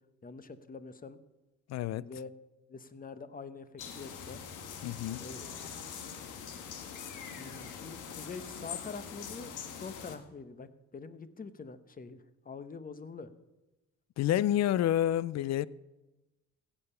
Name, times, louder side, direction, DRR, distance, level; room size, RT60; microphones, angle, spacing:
voice 1, 0.2-1.2 2.0-2.3 2.7-4.4 5.2-5.7 7.4-13.3, left 4 dB, 30° left, 0.9 m, -45 dB
voice 2, 1.7-2.1 4.8-5.2 14.2-15.7, left 12 dB, 60° left, 0.5 m, -29 dB
sound 1, 3.8-10.2, left 7 dB, 90° left, 1.4 m, -43 dB
16.0 x 6.9 x 5.6 m
cardioid pair, 90°, 30 cm